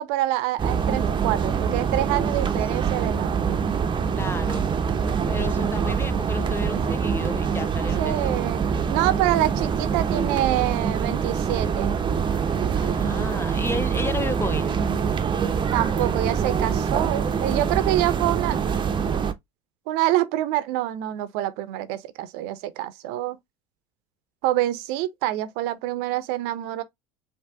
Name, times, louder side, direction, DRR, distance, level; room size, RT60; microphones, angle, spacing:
voice 1, 0.0-3.6 8.0-8.6 8.9-11.9 15.7-18.6 19.9-23.4 24.4-26.8, right 15 dB, 60° right, 0.7 m, -26 dB
sound 1, 0.6-19.3, right 6 dB, 25° right, 0.7 m, -24 dB
voice 2, 4.1-4.7 5.3-8.4 12.7-14.8, left 3 dB, 15° left, 0.5 m, -32 dB
4.7 x 2.8 x 3.4 m
hypercardioid pair, 80°, 18 cm